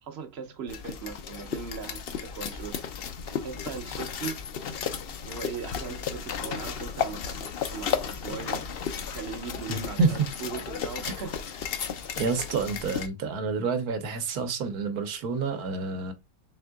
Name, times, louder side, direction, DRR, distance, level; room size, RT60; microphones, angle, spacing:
voice 1, 0.0-2.8 3.4-4.4 5.3-8.7 9.0-11.4, right 6 dB, 50° right, 0.8 m, -39 dB
sound 1, 0.7-13.1, left 7 dB, 65° left, 0.5 m, -34 dB
voice 2, 9.7-10.2 11.0-11.1 12.2-16.1, right 4 dB, 75° right, 1.3 m, -28 dB
4.3 x 3.6 x 2.2 m
omnidirectional pair, 1.6 m